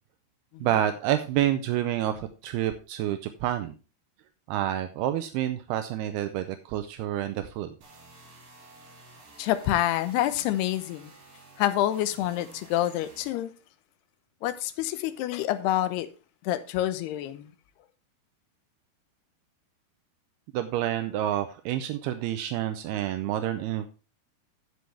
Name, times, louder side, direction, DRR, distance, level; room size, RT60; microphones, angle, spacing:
voice 1, 0.6-3.7 4.5-7.8 20.5-23.9, right 12 dB, 80° right, 2.6 m, -28 dB
sound 1, 7.8-13.3, right 2 dB, 60° right, 5.5 m, -52 dB
voice 2, 9.4-11.1 11.6-13.5 14.4-16.1 16.4-17.5, left 13 dB, 85° left, 2.8 m, -27 dB
14.5 x 6.2 x 3.3 m
omnidirectional pair, 4.7 m